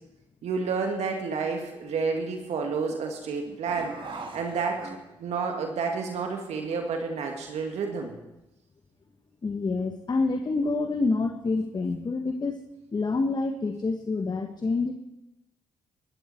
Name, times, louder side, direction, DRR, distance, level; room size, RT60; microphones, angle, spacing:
voice 1, 0.4-8.1, right 5 dB, 70° right, 2 dB, 2.3 m, -30 dB
sound 1, 3.7-5.5 6.0-6.1 6.4-7.6, right 3 dB, 45° right, 2.5 m, -43 dB
voice 2, 9.4-12.6 12.9-14.9, left 3 dB, 35° left, 5 dB, 1.4 m, -27 dB
21.5 x 12.5 x 4.5 m, 0.96 s
supercardioid pair, 55°, 12 cm